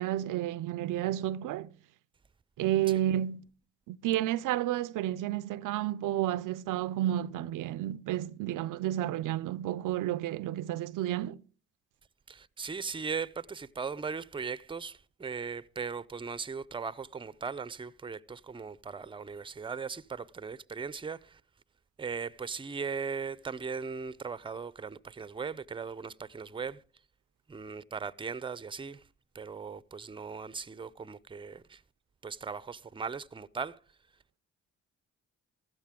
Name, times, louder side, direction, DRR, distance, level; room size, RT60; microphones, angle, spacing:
voice 1, 0.0-1.7 2.6-3.5 3.9-11.4, right 13 dB, 75° right, 0.5 m, -31 dB
voice 2, 12.3-21.4 22.0-26.8 27.5-29.0 29.3-31.8 32.2-33.8, right 5 dB, 15° right, 0.5 m, -38 dB
15.0 x 12.0 x 3.6 m
supercardioid pair, 55°, 32 cm